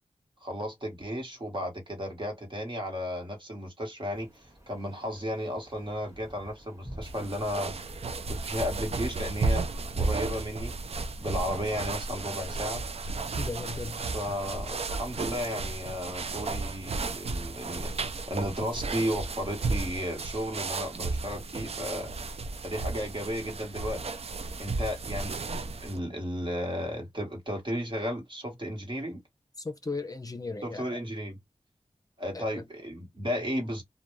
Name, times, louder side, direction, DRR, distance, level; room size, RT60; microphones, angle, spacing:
voice 1, 0.4-7.7 8.3-9.6 10.0-10.7 11.2-12.8 14.1-22.1 22.6-24.0 24.6-29.2 30.6-31.4 32.2-33.8, equal, 45° right, 1.3 m, -34 dB
sound 1, 4.1-9.5, equal, 25° right, 1.3 m, -50 dB
sound 2, 7.0-26.0, right 3 dB, 60° right, 0.4 m, -34 dB
voice 2, 13.3-14.0 14.3-14.4 29.6-30.8 32.3-32.6, left 3 dB, 30° left, 0.6 m, -36 dB
2.3 x 2.2 x 3.0 m
wide cardioid pair, 65°, 12 cm